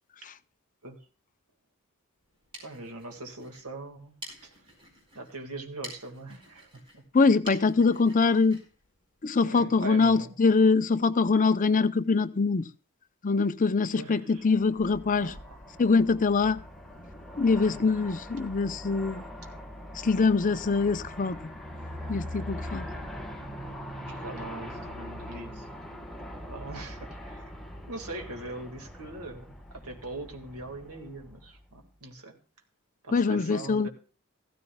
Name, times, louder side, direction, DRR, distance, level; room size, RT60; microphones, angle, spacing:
sound 1, 2.2-9.7, equal, 25° right, 4.4 m, -49 dB
voice 1, 2.6-4.1 4.4-4.6 5.1-7.0 9.4-10.4 14.0-14.5 15.2-15.6 17.6-17.9 24.1-25.7 26.5-27.4 27.9-32.4 33.0-33.9, right 2 dB, 90° right, 1.9 m, -41 dB
voice 2, 7.1-8.6 9.2-12.6 13.2-15.3 15.8-16.6 17.4-19.2 20.0-21.4 22.1-22.9 33.1-33.9, left 4 dB, 35° left, 0.6 m, -23 dB
Aircraft, 14.6-31.8, equal, ahead, 1.3 m, -42 dB
15.0 x 14.0 x 2.3 m
head